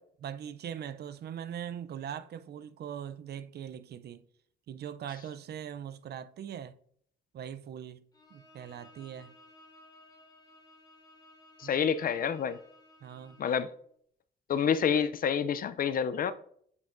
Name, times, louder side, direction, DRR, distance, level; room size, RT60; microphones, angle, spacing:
voice 1, 0.2-4.2 4.7-6.8 7.3-8.1 8.3-9.4 11.6-11.9 13.0-13.4, right 9 dB, 55° right, 0.5 m, -41 dB
Bowed string instrument, 8.1-13.8, left 2 dB, 20° left, 2.8 m, -58 dB
voice 2, 11.6-12.6 13.4-13.7 14.5-16.3, left 7 dB, 45° left, 0.5 m, -28 dB
8.1 x 5.2 x 2.5 m
cardioid pair, 90°, 20 cm